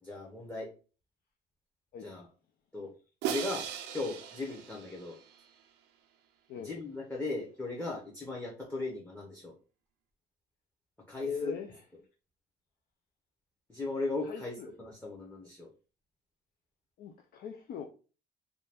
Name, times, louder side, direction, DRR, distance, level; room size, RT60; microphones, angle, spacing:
voice 1, 0.0-0.7 2.0-2.3 2.7-2.9 3.2-5.2 6.6-9.5 11.1-11.5 13.7-15.7, left 2 dB, 10° left, 0.7 m, -37 dB
Crash cymbal, 3.2-5.4, right 9 dB, 85° right, 0.5 m, -38 dB
voice 2, 11.2-11.7 14.2-14.7 17.0-17.9, left 6 dB, 65° left, 0.4 m, -40 dB
2.6 x 2.2 x 3.3 m
cardioid pair, 110°, 17 cm